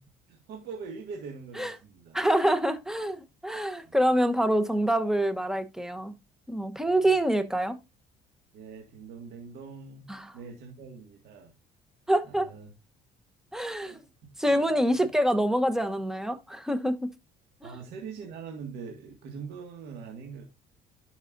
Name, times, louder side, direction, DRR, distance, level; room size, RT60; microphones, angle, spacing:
voice 1, 0.3-2.2 3.8-4.0 6.8-7.1 8.5-10.1 10.3-11.5 12.2-12.7 13.8-14.3 14.7-15.0 17.6-20.4, right 5 dB, 80° right, 1.9 m, -43 dB
voice 2, 2.1-6.1 6.5-7.8 10.1-10.3 12.1-12.5 13.5-14.0 14.4-17.1 17.6-17.7, right 1 dB, 5° right, 1.1 m, -26 dB
11.5 x 5.7 x 2.7 m
cardioid pair, 110°, 17 cm